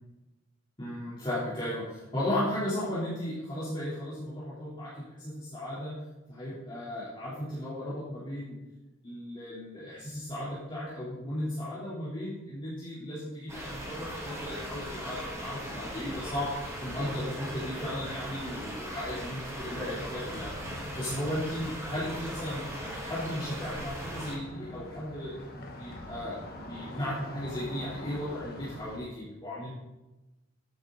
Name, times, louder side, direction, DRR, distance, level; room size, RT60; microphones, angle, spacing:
voice 1, 0.8-5.9 6.3-8.6 9.0-22.6 23.0-26.4 26.7-29.7, left 1 dB, 20° left, -10 dB, 3.4 m, -35 dB
sound 1, 13.5-24.3, equal, 15° right, 3.4 m, -39 dB
sound 2, 19.9-29.0, left 1 dB, 45° left, 1.6 m, -45 dB
13.5 x 9.4 x 4.0 m, 1.0 s
head